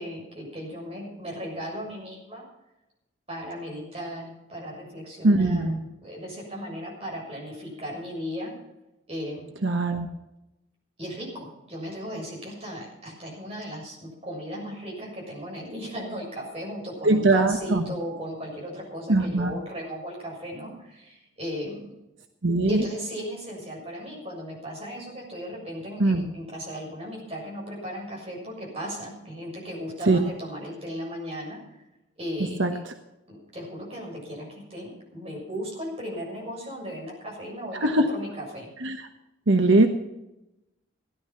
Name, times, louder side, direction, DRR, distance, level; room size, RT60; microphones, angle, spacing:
voice 1, 0.0-2.4 3.3-5.7 6.0-8.5 9.1-9.5 11.0-21.9 22.7-31.6 32.2-32.8 33.3-38.7, equal, 30° right, -2 dB, 6.8 m, -36 dB
voice 2, 5.2-5.8 9.6-10.1 17.0-17.8 19.1-19.5 22.4-22.8 26.0-26.2 30.1-30.2 32.6-32.7 37.7-38.1 38.8-39.0 39.5-39.9, right 2 dB, 80° right, 6 dB, 1.2 m, -21 dB
16.5 x 11.5 x 5.8 m, 0.92 s
head